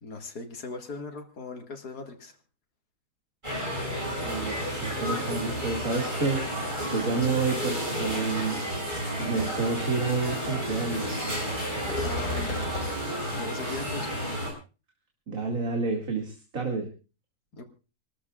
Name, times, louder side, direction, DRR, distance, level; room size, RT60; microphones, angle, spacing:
voice 1, 0.0-2.4 7.1-7.4 12.0-12.6 13.4-14.2 17.5-17.6, left 3 dB, 85° left, 4 dB, 2.5 m, -39 dB
sound 1, 3.4-14.5, equal, 30° right, 7.2 m, -31 dB
voice 2, 4.0-6.4 6.8-8.6 9.2-11.2 15.3-16.9, right 4 dB, 60° right, 1 dB, 2.8 m, -29 dB
sound 2, 8.4-8.5 8.8-9.1 9.4-9.5 11.8-12.9, left 1 dB, 55° left, 4.8 m, -33 dB
28.0 x 13.0 x 2.4 m, 0.33 s
omnidirectional pair, 1.6 m